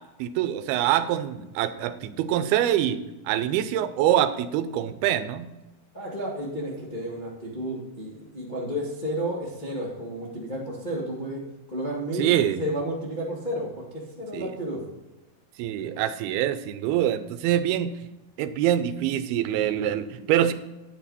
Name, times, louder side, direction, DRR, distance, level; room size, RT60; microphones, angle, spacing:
voice 1, 0.2-5.5 12.2-12.6 14.3-14.5 15.6-17.9 18.4-20.5, right 11 dB, 85° right, 12 dB, 2.6 m, -25 dB
voice 2, 5.9-11.4 11.7-12.3 12.6-14.8, equal, 25° left, -4 dB, 0.9 m, -32 dB
9.4 x 8.4 x 4.1 m, 1.0 s
omnidirectional pair, 4.4 m